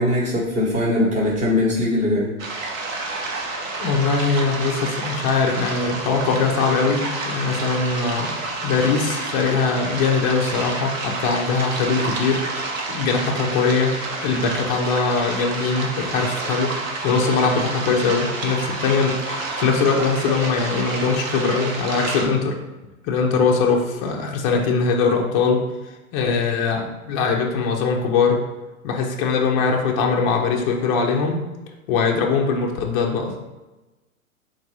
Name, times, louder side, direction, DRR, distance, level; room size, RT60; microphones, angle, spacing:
voice 1, 0.0-2.3, left 1 dB, 15° right, -3 dB, 1.1 m, -21 dB
sound 1, 2.4-22.3, right 3 dB, 60° right, 1.1 m, -29 dB
voice 2, 3.8-8.3 8.6-12.4 12.9-14.0 14.2-16.7 17.0-22.5 23.0-25.6 26.1-28.4 28.8-31.4 31.9-33.3, left 4 dB, 25° left, 0 dB, 0.5 m, -21 dB
3.9 x 2.5 x 4.7 m, 1.1 s
hypercardioid pair, 120°, 44 cm